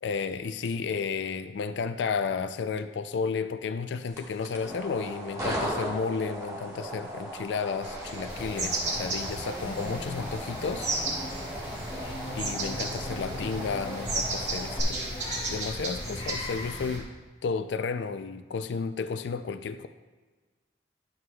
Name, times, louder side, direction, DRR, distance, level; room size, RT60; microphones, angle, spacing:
voice 1, 0.0-10.9 12.4-15.1 15.5-17.1 17.4-19.9, left 5 dB, 85° left, 10 dB, 0.4 m, -32 dB
sound 1, 4.0-14.8, equal, 20° right, 1.4 m, -38 dB
sound 2, 7.8-17.0, right 2 dB, 85° right, 2.0 m, -35 dB
sound 3, 8.3-17.0, left 1 dB, 25° left, 0.7 m, -40 dB
11.0 x 7.7 x 2.3 m, 1.4 s
head